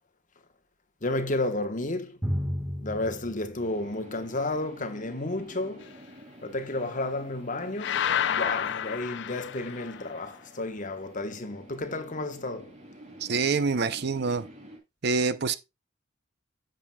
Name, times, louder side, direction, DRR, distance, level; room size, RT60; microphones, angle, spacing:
voice 1, 1.0-2.1 2.8-5.8 6.4-8.0 8.3-12.7, left 2 dB, 40° left, 1.1 m, -32 dB
Drum, 2.2-4.6, equal, 10° right, 1.5 m, -34 dB
sound 1, 3.6-14.8, equal, 35° right, 2.9 m, -50 dB
sound 2, 7.8-10.1, left 9 dB, 60° left, 0.4 m, -29 dB
voice 2, 13.2-14.5 15.0-15.5, right 4 dB, 55° right, 0.6 m, -26 dB
9.9 x 7.6 x 2.3 m
head